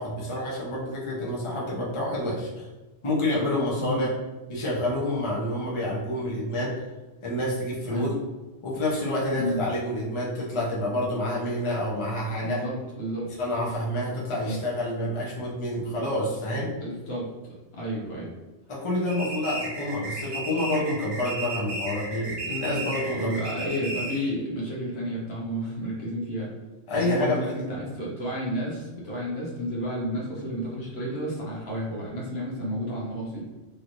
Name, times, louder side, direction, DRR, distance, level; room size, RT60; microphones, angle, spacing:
voice 1, 0.0-2.7 3.0-4.1 4.5-6.7 7.2-8.1 8.6-12.6 13.4-16.7 18.7-23.3 26.9-27.4, left 1 dB, 30° left, -5 dB, 0.7 m, -28 dB
voice 2, 12.4-13.3 14.3-14.6 16.8-18.3 23.1-26.5 26.9-33.5, equal, 70° left, -4 dB, 1.2 m, -31 dB
sound 1, 19.1-24.3, right 2 dB, 40° right, 0.5 m, -34 dB
3.2 x 2.9 x 2.6 m, 1.2 s
omnidirectional pair, 1.1 m